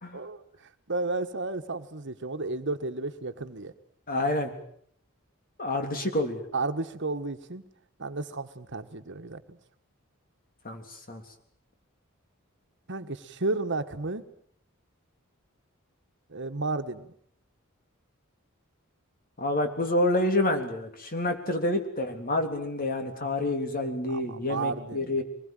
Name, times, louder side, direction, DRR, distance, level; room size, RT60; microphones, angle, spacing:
voice 1, 0.1-3.7 6.5-7.7 8.0-9.6 12.9-14.3 16.3-17.1 24.1-25.2, right 3 dB, 60° right, 8 dB, 1.5 m, -33 dB
voice 2, 4.1-4.5 5.6-6.4 10.6-11.2 19.4-25.2, left 1 dB, 45° left, 6 dB, 3.5 m, -28 dB
24.0 x 20.5 x 9.2 m, 0.64 s
head